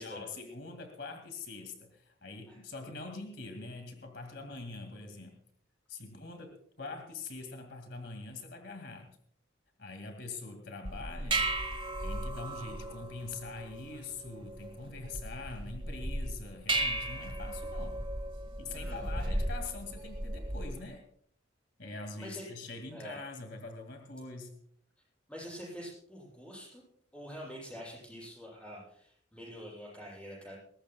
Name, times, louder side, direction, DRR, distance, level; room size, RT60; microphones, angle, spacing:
voice 1, 0.0-5.4 5.9-9.2 9.8-11.5 12.0-18.0 18.6-21.0 21.8-24.6, left 3 dB, 65° left, 5 dB, 2.1 m, -44 dB
sound 1, 10.8-20.8, right 1 dB, 30° right, 1.8 m, -36 dB
voice 2, 18.7-19.4 22.1-22.5 22.9-23.2 25.3-26.8 27.1-30.6, equal, 5° left, -4 dB, 7.4 m, -46 dB
21.5 x 18.5 x 2.2 m, 0.64 s
head